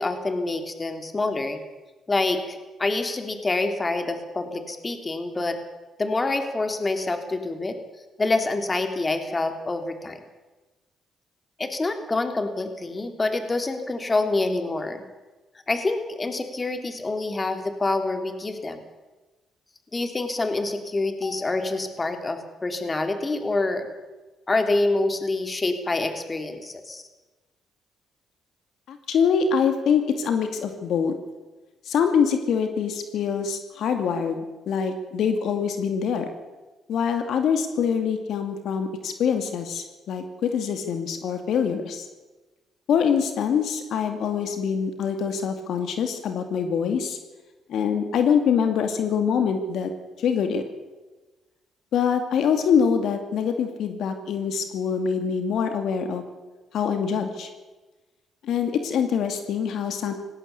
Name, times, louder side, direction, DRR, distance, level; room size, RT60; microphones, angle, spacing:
voice 1, 0.0-1.6 2.1-5.6 6.0-7.8 8.2-10.2 11.6-15.0 15.7-18.8 19.9-23.9 24.5-27.1, left 2 dB, 25° left, 7 dB, 3.1 m, -26 dB
voice 2, 28.9-31.1 31.8-36.3 36.9-42.1 42.9-47.2 47.7-49.9 50.2-50.6 51.9-56.2 56.7-57.5 58.4-60.1, left 7 dB, 75° left, 7 dB, 2.5 m, -24 dB
19.0 x 16.5 x 8.4 m, 1.2 s
cardioid pair, 80°, 0 cm